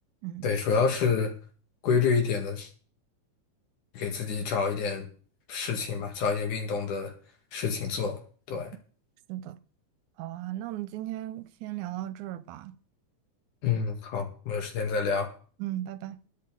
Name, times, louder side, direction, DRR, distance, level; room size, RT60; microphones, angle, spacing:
voice 1, 0.4-1.3 1.8-2.7 3.9-5.1 5.5-7.1 7.5-8.2 8.5-8.7 13.6-15.3, left 5 dB, 80° left, 3.4 m, -28 dB
voice 2, 10.2-12.8 15.6-16.2, right 14 dB, 85° right, 2.2 m, -36 dB
21.0 x 8.4 x 3.9 m
omnidirectional pair, 3.4 m